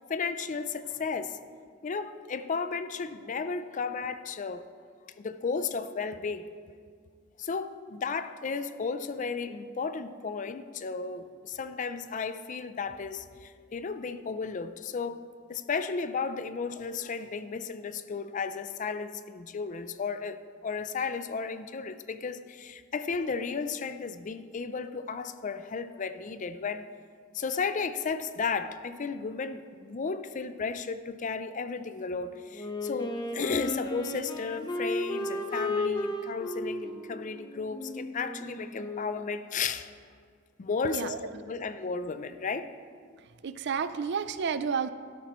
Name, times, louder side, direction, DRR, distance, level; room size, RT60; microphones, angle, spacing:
voice 1, 0.1-1.4 1.8-4.9 5.2-6.5 7.4-15.2 15.5-26.8 27.3-39.9 40.6-42.7, left 5 dB, 40° left, 11 dB, 0.4 m, -34 dB
Wind instrument woodwind instrument, 32.5-39.2, left 2 dB, 20° left, 0.8 m, -34 dB
voice 2, 43.4-44.9, right 6 dB, 60° right, 13 dB, 0.4 m, -30 dB
12.5 x 12.0 x 3.1 m, 2.1 s
head